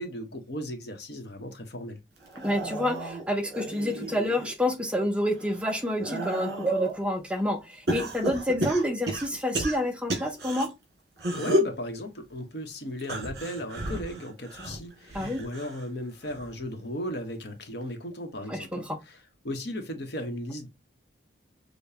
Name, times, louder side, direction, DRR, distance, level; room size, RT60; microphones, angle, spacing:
voice 1, 0.0-2.0 11.4-19.2 19.4-20.7, equal, 60° left, 1.0 m, -36 dB
sound 1, 2.2-4.5 5.0-7.0 7.9-10.7 11.2-11.8 13.0-15.9 16.2-16.7 17.8-17.9, right 1 dB, 55° right, 1.9 m, -32 dB
voice 2, 2.4-10.7 15.1-15.4 18.5-19.0, left 1 dB, 5° right, 0.5 m, -28 dB
6.6 x 2.3 x 2.7 m
head